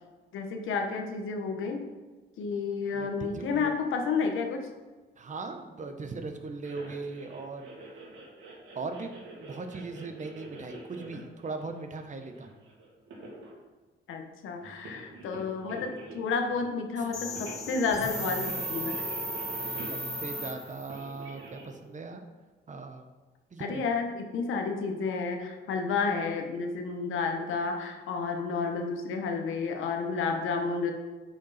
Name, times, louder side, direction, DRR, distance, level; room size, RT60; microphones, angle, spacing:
voice 1, 0.3-1.9 2.4-4.7 14.1-19.0 23.6-30.9, left 4 dB, 85° left, 4 dB, 1.2 m, -31 dB
voice 2, 2.9-3.8 5.2-8.1 8.7-12.6 19.9-22.2 22.7-23.1 23.5-23.8, right 3 dB, 40° right, 6 dB, 1.0 m, -39 dB
sound 1, 6.6-13.5 14.6-17.0 17.4-18.0 18.2-20.3 20.9-21.8, right 2 dB, 85° right, 2.4 m, -46 dB
sound 2, 17.1-21.0, equal, 35° left, 2.6 m, -35 dB
9.9 x 5.4 x 4.2 m, 1.3 s
cardioid pair, 105°, 20 cm